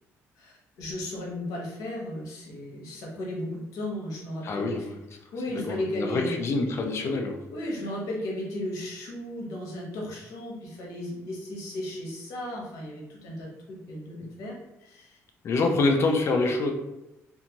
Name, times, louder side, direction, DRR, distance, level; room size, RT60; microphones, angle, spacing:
voice 1, 0.4-4.9 5.3-6.3 7.0-7.2 7.5-15.2, left 1 dB, 85° left, -3 dB, 1.0 m, -35 dB
voice 2, 4.4-5.0 5.5-7.3 15.4-16.7, left 3 dB, 50° left, 4 dB, 0.5 m, -26 dB
2.6 x 2.3 x 2.9 m, 0.94 s
cardioid pair, 115°, 6 cm